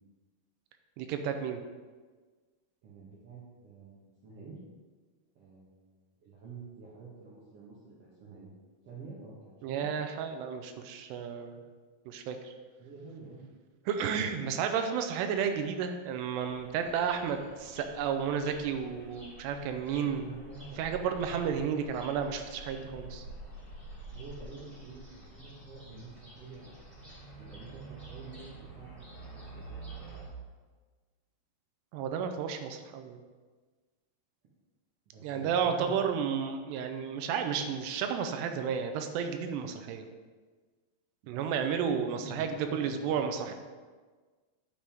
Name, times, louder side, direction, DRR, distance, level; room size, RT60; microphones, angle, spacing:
voice 1, 1.0-1.6 9.6-11.6 12.1-12.5 13.9-20.4 20.8-23.3 31.9-33.2 35.2-40.1 41.3-43.5, right 7 dB, 85° right, 6 dB, 2.7 m, -32 dB
voice 2, 2.8-4.6 5.3-8.5 8.8-9.9 12.8-13.4 20.0-20.9 24.1-26.8 27.4-30.0 35.1-36.2 41.2-43.5, right 4 dB, 65° right, -7 dB, 1.5 m, -48 dB
sound 1, 16.4-30.3, right 2 dB, 15° right, 2.4 m, -48 dB
9.6 x 7.5 x 3.6 m, 1.4 s
omnidirectional pair, 4.9 m